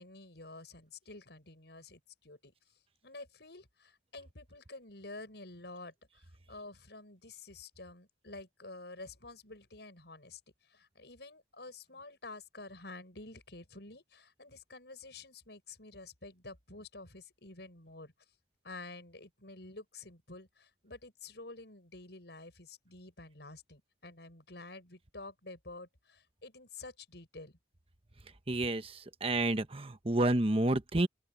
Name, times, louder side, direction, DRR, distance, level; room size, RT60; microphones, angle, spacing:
voice 1, 0.0-2.5 3.0-18.1 18.6-27.6, left 2 dB, 70° left, 6.7 m, -49 dB
voice 2, 28.5-28.9 29.2-31.1, right 2 dB, 30° right, 1.1 m, -29 dB
open air
head